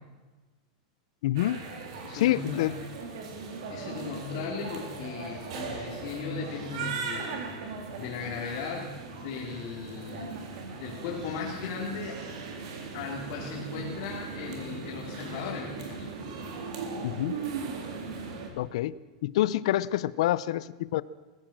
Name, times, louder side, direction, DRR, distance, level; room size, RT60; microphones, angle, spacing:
voice 1, 1.2-1.6 2.1-2.7 17.0-17.4 18.6-18.9 19.2-21.0, left 14 dB, 60° left, 19 dB, 0.6 m, -27 dB
sound 1, 1.4-18.5, right 4 dB, 55° right, 3.7 m, -39 dB
voice 2, 2.0-2.8 3.7-7.4 8.0-8.9 9.2-10.3 10.8-12.2 12.9-16.1, left 5 dB, 40° left, -4 dB, 3.5 m, -37 dB
22.5 x 15.5 x 7.5 m, 1.2 s
supercardioid pair, 175°, 4 cm